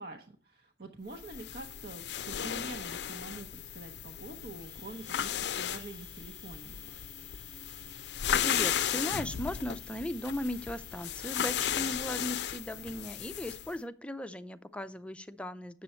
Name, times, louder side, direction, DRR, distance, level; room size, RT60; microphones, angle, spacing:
voice 1, 0.0-6.7, right 2 dB, 60° right, 3 dB, 0.9 m, -46 dB
sound 1, 1.2-13.7, left 9 dB, 65° left, 0.5 m, -35 dB
Domestic sounds home sounds, 4.6-12.3, right 2 dB, 25° right, 1.1 m, -61 dB
voice 2, 8.4-15.8, left 1 dB, 5° left, 11 dB, 0.5 m, -37 dB
8.3 x 6.9 x 4.3 m, 0.42 s
head